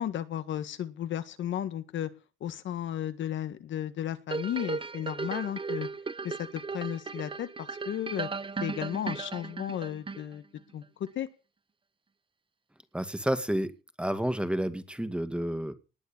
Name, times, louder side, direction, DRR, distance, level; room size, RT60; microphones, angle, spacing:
voice 1, 0.0-2.1 2.4-5.9 6.2-8.3 8.6-10.4 10.7-10.8 11.2-11.3, left 10 dB, 70° left, 11 dB, 1.8 m, -34 dB
sound 1, 4.3-10.6 11.1-11.2, right 4 dB, 25° right, 1.0 m, -36 dB
voice 2, 12.9-15.8, right 1 dB, 5° right, 11 dB, 2.0 m, -30 dB
19.5 x 7.1 x 8.8 m, 0.35 s
cardioid pair, 90°, 20 cm